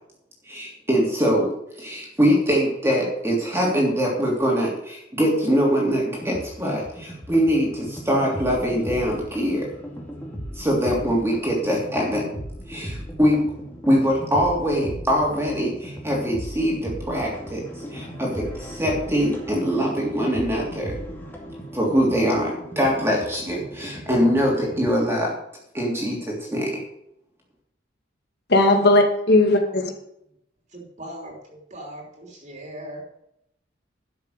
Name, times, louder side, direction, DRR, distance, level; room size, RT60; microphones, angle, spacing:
voice 1, 0.5-9.7 10.5-12.2 12.7-13.5 13.9-17.6 17.9-20.9 21.7-25.3 25.7-26.7, equal, 15° right, 3.1 m, -23 dB
sound 1, 6.1-25.0, equal, 10° left, 2.5 m, -37 dB
voice 2, 28.5-30.0, left 2 dB, 60° left, 2.3 m, -17 dB
voice 3, 30.7-33.0, right 1 dB, 40° right, 3.3 m, -39 dB
12.0 x 7.5 x 6.6 m
head